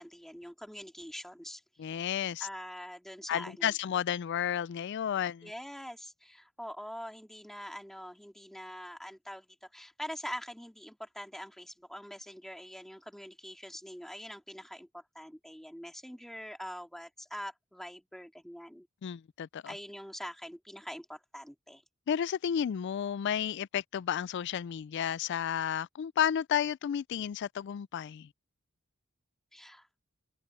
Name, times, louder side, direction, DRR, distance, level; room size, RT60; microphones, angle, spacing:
voice 1, 0.0-1.6 2.4-3.7 5.4-18.9 19.7-21.8 29.5-29.9, equal, ahead, 2.5 m, -44 dB
voice 2, 1.8-2.5 3.3-5.5 19.0-19.7 22.1-28.3, left 9 dB, 60° left, 0.3 m, -32 dB
head